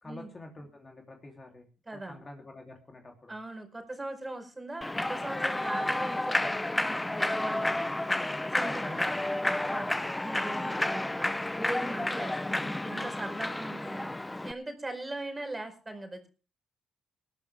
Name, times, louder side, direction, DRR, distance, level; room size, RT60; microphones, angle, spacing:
voice 1, 0.0-1.7 1.9-3.4 8.6-9.2, left 2 dB, 30° left, 2 dB, 3.2 m, -47 dB
voice 2, 1.9-2.2 3.3-7.9 8.4-9.0 9.4-9.9 10.2-14.1 14.4-16.3, right 2 dB, 15° right, 6 dB, 4.8 m, -40 dB
Human voice / Clapping / Cheering, 4.8-14.5, left 1 dB, 10° left, 0.8 m, -31 dB
20.0 x 12.5 x 3.5 m, 0.35 s
cardioid pair, 90°, 0 cm